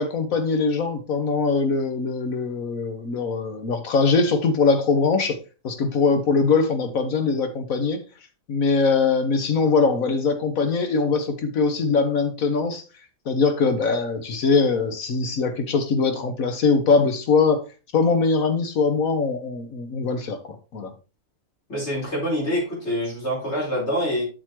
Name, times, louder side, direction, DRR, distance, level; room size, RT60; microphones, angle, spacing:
voice 1, 0.0-5.4 5.6-8.0 8.5-12.8 13.3-17.6 17.9-20.9, left 4 dB, 90° left, 1.6 m, -22 dB
voice 2, 21.7-24.2, equal, 55° left, 4.6 m, -25 dB
7.9 x 6.9 x 3.1 m
omnidirectional pair, 1.4 m